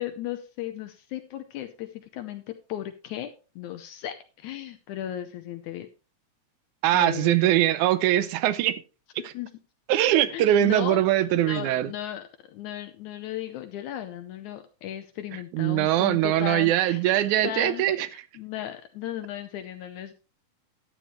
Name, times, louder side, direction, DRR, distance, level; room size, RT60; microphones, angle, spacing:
voice 1, 0.0-3.3 3.6-5.9 6.9-7.4 9.3-9.5 10.3-11.0 11.4-17.0 17.4-17.9 18.4-20.1, left 11 dB, 80° left, 2.1 m, -36 dB
voice 2, 6.8-8.8 9.2-9.3 9.9-11.9 15.5-18.1, right 13 dB, 80° right, 2.0 m, -22 dB
12.5 x 9.1 x 3.1 m
omnidirectional pair, 3.6 m